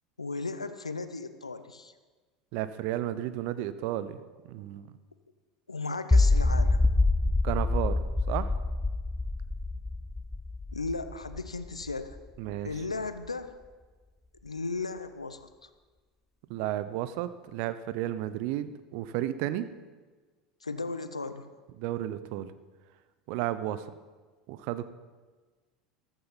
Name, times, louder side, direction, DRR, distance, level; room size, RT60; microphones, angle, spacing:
voice 1, 0.2-1.9 5.7-6.9 10.7-12.2 12.6-13.6 14.4-15.7 20.6-21.5, left 3 dB, 90° left, 11 dB, 0.7 m, -36 dB
voice 2, 2.5-4.2 4.5-4.9 7.4-8.0 8.3-8.5 12.4-12.7 16.5-19.7 21.8-22.5 23.3-23.9 24.5-24.9, right 13 dB, 55° right, 13 dB, 0.8 m, -32 dB
sound 1, 6.1-12.2, left 2 dB, 10° left, 0.5 m, -26 dB
14.5 x 13.5 x 4.2 m, 1.4 s
figure-of-eight pair, 75°, 3 cm